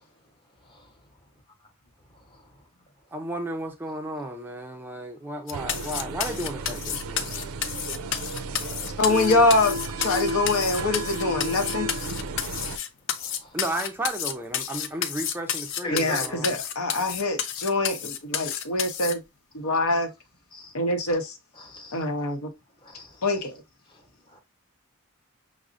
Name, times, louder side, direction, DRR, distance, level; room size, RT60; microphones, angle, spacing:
voice 1, 2.3-2.6 7.7-8.0 8.5-9.0 11.6-11.7 12.5-12.8 13.1-13.6 15.8-16.7 17.0-17.2 19.9-20.0 20.5-20.7 21.5-22.1 22.8-23.4 23.9-24.4, equal, 20° left, 0.8 m, -42 dB
voice 2, 3.1-7.3 13.5-16.6, right 1 dB, 10° right, 0.3 m, -33 dB
sound 1, 5.5-19.1, left 9 dB, 60° left, 0.4 m, -31 dB
sound 2, 5.5-12.8, right 2 dB, 80° right, 0.4 m, -33 dB
voice 3, 9.0-11.9 15.9-19.2 19.5-20.1 20.7-21.3 21.9-22.5 23.2-23.6, left 2 dB, 85° left, 0.8 m, -24 dB
5.9 x 2.0 x 2.5 m
head